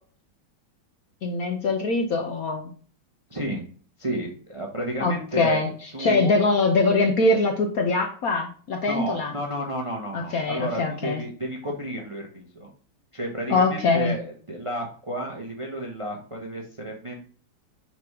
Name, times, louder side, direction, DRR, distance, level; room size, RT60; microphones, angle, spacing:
voice 1, 1.2-2.7 5.0-5.7 6.0-9.3 10.1-11.2 13.5-14.1, left 3 dB, 60° left, 4 dB, 1.0 m, -23 dB
voice 2, 3.3-3.6 4.0-6.3 8.9-12.7 13.1-17.2, equal, 25° right, 0 dB, 0.7 m, -32 dB
5.9 x 4.7 x 3.5 m, 0.43 s
omnidirectional pair, 2.2 m